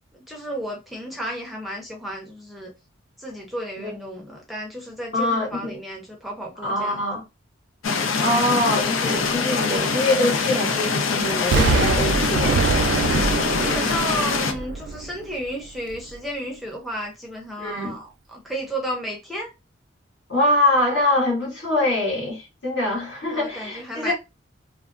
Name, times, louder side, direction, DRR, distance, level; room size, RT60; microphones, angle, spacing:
voice 1, 0.3-2.7 3.2-7.0 13.6-19.5 23.3-24.1, equal, ahead, 0.5 m, -33 dB
voice 2, 5.1-5.8 6.6-7.2 8.2-12.6 17.6-17.9 20.3-24.1, left 1 dB, 65° left, 1.7 m, -23 dB
sound 1, 7.8-14.5, left 5 dB, 85° left, 0.5 m, -23 dB
Explosion, 11.5-15.4 15.9-16.0, right 4 dB, 60° right, 0.3 m, -23 dB
3.4 x 2.0 x 2.4 m
head